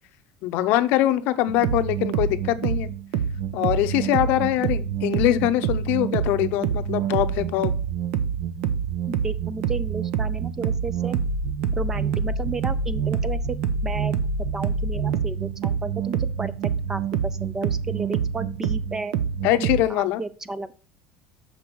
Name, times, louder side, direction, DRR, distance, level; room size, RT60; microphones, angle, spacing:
voice 1, 0.4-2.9 3.5-7.7 19.4-20.2, left 14 dB, 60° left, 11 dB, 0.7 m, -23 dB
sound 1, 1.5-19.8, right 7 dB, 65° right, 0.9 m, -26 dB
voice 2, 9.1-11.2 11.7-13.6 13.8-14.1 14.5-19.1 19.6-20.7, right 3 dB, 15° right, 16 dB, 0.4 m, -33 dB
6.6 x 5.3 x 6.0 m, 0.39 s
cardioid pair, 155°, 4 cm